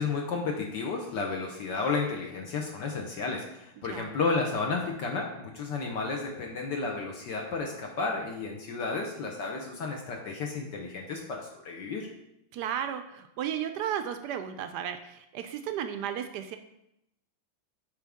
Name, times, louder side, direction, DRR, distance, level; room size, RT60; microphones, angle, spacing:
voice 1, 0.0-12.1, left 4 dB, 65° left, 1 dB, 1.4 m, -32 dB
voice 2, 3.8-4.1 12.5-16.6, right 9 dB, 75° right, 8 dB, 1.0 m, -34 dB
8.2 x 5.2 x 3.5 m, 0.81 s
omnidirectional pair, 2.2 m